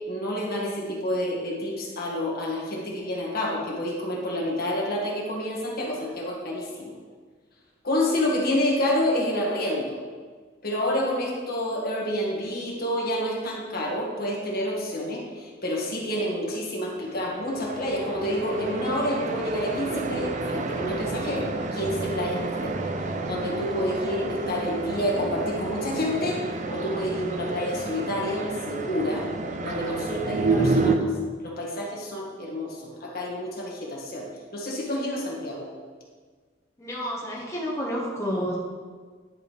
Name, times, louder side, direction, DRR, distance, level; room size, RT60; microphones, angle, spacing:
voice 1, 0.1-6.9 7.8-10.0 10.6-22.8 23.3-26.4 26.7-29.3 29.6-31.0 31.4-34.3 34.5-35.7, left 1 dB, 55° left, -3 dB, 1.6 m, -28 dB
sound 1, 17.0-31.0, right 3 dB, 40° right, 0.5 m, -30 dB
voice 2, 36.8-38.5, equal, 15° left, -5 dB, 1.1 m, -30 dB
10.5 x 4.9 x 3.3 m, 1.5 s
head